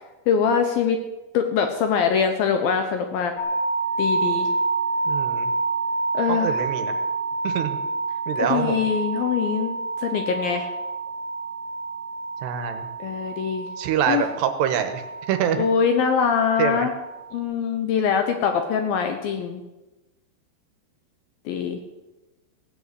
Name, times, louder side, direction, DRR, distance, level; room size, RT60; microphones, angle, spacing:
voice 1, 0.3-1.0 1.3-3.3 4.0-4.5 6.1-6.6 8.4-9.8 10.0-10.7 13.0-13.7 14.1-14.2 15.6-16.9 17.3-19.6 21.5-21.8, left 7 dB, 70° left, 6 dB, 2.3 m, -23 dB
sound 1, 3.4-17.4, right 3 dB, 50° left, 2.6 m, -28 dB
voice 2, 5.1-5.5 6.3-7.0 7.4-7.8 8.3-8.8 12.4-12.9 13.8-15.7 16.6-16.9, right 9 dB, 75° right, 9 dB, 3.1 m, -25 dB
16.5 x 7.9 x 8.2 m, 1.1 s
omnidirectional pair, 5.1 m